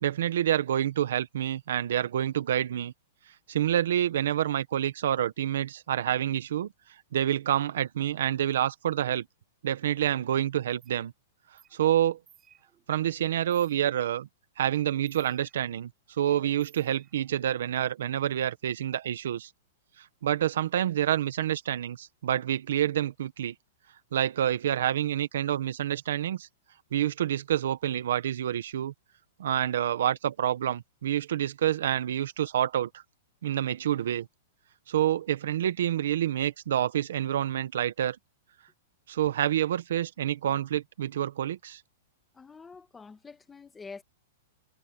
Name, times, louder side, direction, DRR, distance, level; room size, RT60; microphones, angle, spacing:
voice 1, 0.0-2.9 3.5-6.7 7.1-9.2 9.6-11.1 11.7-12.2 12.9-14.3 14.6-15.9 16.2-19.5 20.2-23.5 24.1-26.5 26.9-28.9 29.4-32.9 33.4-34.3 34.9-38.2 39.1-41.8, right 11 dB, 65° right, 1.2 m, -28 dB
sound 1, 10.8-11.0 11.6-11.8 12.0-12.9 13.2-14.2 14.7-15.9 16.3-17.5, right 9 dB, 15° right, 3.2 m, -61 dB
voice 2, 42.3-44.0, left 4 dB, 5° left, 1.7 m, -46 dB
supercardioid pair, 180°, 0 cm